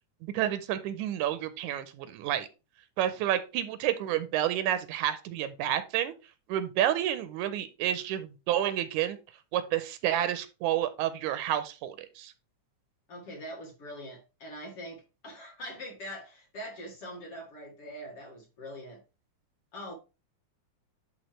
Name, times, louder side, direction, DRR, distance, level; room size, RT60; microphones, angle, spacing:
voice 1, 0.2-2.5 3.0-6.1 6.5-9.2 9.5-12.3, right 11 dB, 85° right, 12 dB, 2.1 m, -30 dB
voice 2, 13.1-19.0 19.7-19.9, equal, 50° left, -1 dB, 2.6 m, -43 dB
11.0 x 3.7 x 3.2 m, 0.29 s
omnidirectional pair, 3.5 m